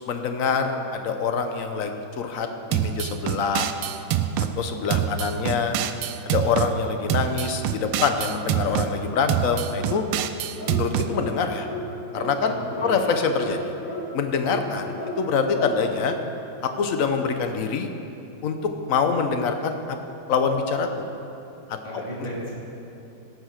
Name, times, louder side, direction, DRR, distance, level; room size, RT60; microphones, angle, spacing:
voice 1, 0.1-3.7 4.6-5.8 6.2-10.0 10.7-11.7 12.1-12.5 12.8-13.7 14.1-16.1 16.6-17.9 18.4-18.6 18.9-20.0 20.3-21.0 21.7-21.8, left 5 dB, 55° left, 6 dB, 0.9 m, -25 dB
sound 1, 2.7-4.5 4.9-6.7 7.1-8.9 9.3-11.1, right 11 dB, 90° right, 1.5 m, -25 dB
sound 2, 10.6-10.8 11.1-11.3 11.6-11.8 12.1-12.3 12.7-12.9 13.3-13.5 13.8-14.0 14.4-14.6 15.0-15.2 15.5-15.7, left 2 dB, 40° left, 2.5 m, -33 dB
voice 2, 12.4-13.1 21.8-22.5, equal, 20° left, -7 dB, 3.1 m, -35 dB
17.0 x 6.5 x 6.5 m, 2.9 s
omnidirectional pair, 2.3 m